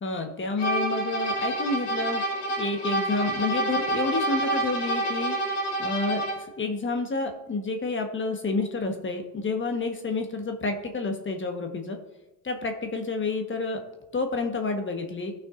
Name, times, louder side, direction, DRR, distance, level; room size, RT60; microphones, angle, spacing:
voice 1, 0.0-2.2 2.6-5.4 5.8-12.0 12.4-13.8 14.1-15.3, left 3 dB, 25° left, 5 dB, 1.2 m, -29 dB
sound 1, 0.6-6.5, right 2 dB, 60° left, 2.4 m, -28 dB
16.0 x 6.0 x 2.5 m, 0.99 s
supercardioid pair, 95°, 45 cm